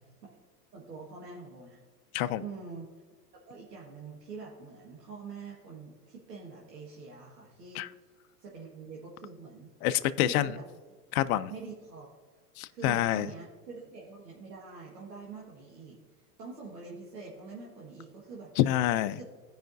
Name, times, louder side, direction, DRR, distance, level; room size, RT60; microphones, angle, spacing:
voice 1, 0.7-1.8 2.4-2.9 3.5-7.8 8.4-9.7 10.2-10.7 11.5-12.1 12.7-18.5 19.1-19.2, right 4 dB, 90° right, 1.7 m, -45 dB
voice 2, 9.8-10.5 11.1-11.5 12.6-13.3 18.6-19.2, left 13 dB, 60° left, 0.6 m, -27 dB
15.0 x 5.1 x 2.6 m
hypercardioid pair, 115°, 48 cm